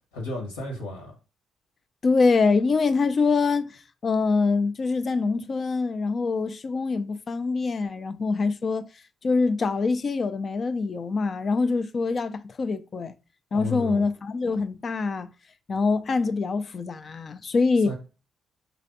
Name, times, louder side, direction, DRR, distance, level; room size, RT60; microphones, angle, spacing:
voice 1, 0.1-1.1 13.5-14.0 17.8-17.9, left 2 dB, 75° left, 1.2 m, -33 dB
voice 2, 2.0-8.9 9.2-13.1 13.5-15.3 15.7-17.9, left 4 dB, 40° left, 0.4 m, -24 dB
5.7 x 3.2 x 2.6 m
figure-of-eight pair, 40°, 0 cm